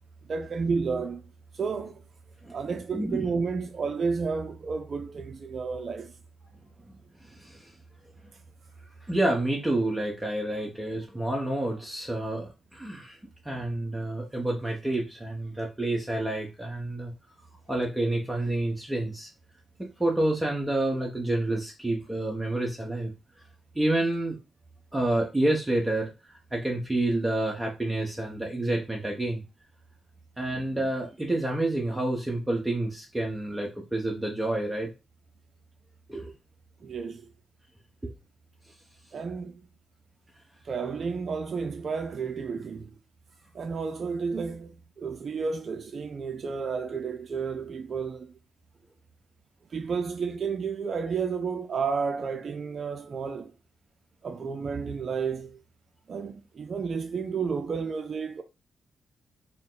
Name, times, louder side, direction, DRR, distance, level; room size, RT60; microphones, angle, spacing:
voice 1, 0.3-1.3 1.5-2.0 2.5-6.1 36.8-37.3 39.1-39.6 40.6-43.0 43.5-48.4 49.7-53.5 54.2-55.6 56.1-58.4, right 5 dB, 50° right, 0.5 m, -31 dB
voice 2, 2.9-3.3 6.9-7.0 7.3-7.7 9.1-13.2 13.4-17.1 17.7-19.3 19.8-23.1 23.7-24.4 24.9-26.1 26.5-29.4 30.4-34.9 36.1-36.3 38.0-38.1, right 1 dB, 15° right, 0.9 m, -28 dB
4.3 x 2.1 x 3.8 m
cardioid pair, 85°, 0 cm